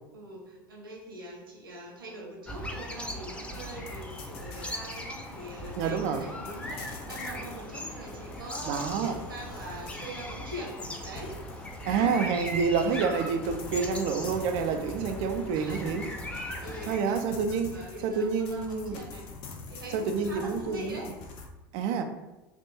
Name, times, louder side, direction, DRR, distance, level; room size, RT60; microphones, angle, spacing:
voice 1, 0.1-10.7 11.0-12.2 15.5-16.0 16.6-17.4 17.7-19.2 19.7-21.1, right 1 dB, 85° right, 1.1 m, -43 dB
sound 1, 2.5-17.0, left 1 dB, 10° left, 0.6 m, -39 dB
sound 2, 3.5-21.5, left 4 dB, 55° left, 0.7 m, -46 dB
voice 2, 5.8-6.3 8.7-9.2 11.9-16.1 16.9-17.7 18.0-19.0 19.9-21.0 21.7-22.0, right 5 dB, 55° right, 0.5 m, -28 dB
3.5 x 2.5 x 4.2 m
hypercardioid pair, 80°, 11 cm